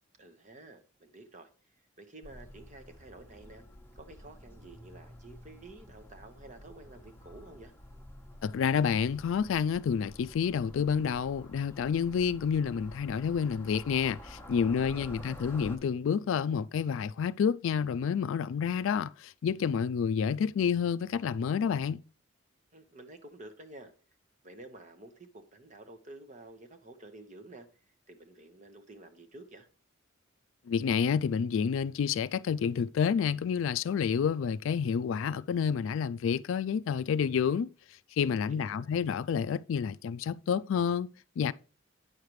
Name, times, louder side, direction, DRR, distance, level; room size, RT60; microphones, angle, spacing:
voice 1, 0.2-1.5 2.0-3.6 4.0-7.7 14.8-15.3 22.7-23.9 24.4-27.7 28.1-29.7 38.5-38.9, right 2 dB, 35° right, 1.1 m, -51 dB
sound 1, 2.2-15.8, left 1 dB, 10° left, 1.0 m, -50 dB
voice 2, 8.4-22.0 30.7-37.7 38.2-41.5, left 7 dB, 65° left, 0.3 m, -29 dB
9.3 x 6.5 x 3.1 m
head